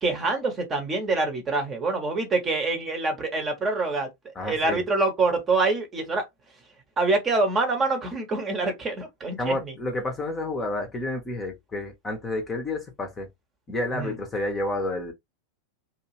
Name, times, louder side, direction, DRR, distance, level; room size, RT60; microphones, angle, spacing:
voice 1, 0.0-4.1 4.4-6.3 7.0-9.6 13.9-14.1, right 3 dB, 20° right, 1.0 m, -25 dB
voice 2, 4.3-4.8 9.4-13.3 13.7-15.1, left 2 dB, 15° left, 0.8 m, -30 dB
2.7 x 2.4 x 3.0 m
figure-of-eight pair, 90°, 0 cm